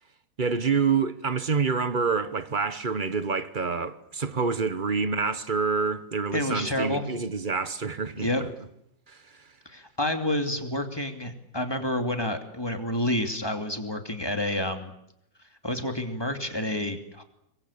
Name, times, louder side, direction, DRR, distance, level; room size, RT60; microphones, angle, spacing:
voice 1, 0.4-8.5 9.1-9.5, right 5 dB, 30° right, 1.1 m, -27 dB
voice 2, 6.3-7.0 8.2-8.4 9.7-14.9 15.6-17.2, left 1 dB, 10° left, 2.7 m, -29 dB
26.0 x 22.5 x 8.7 m
omnidirectional pair, 2.0 m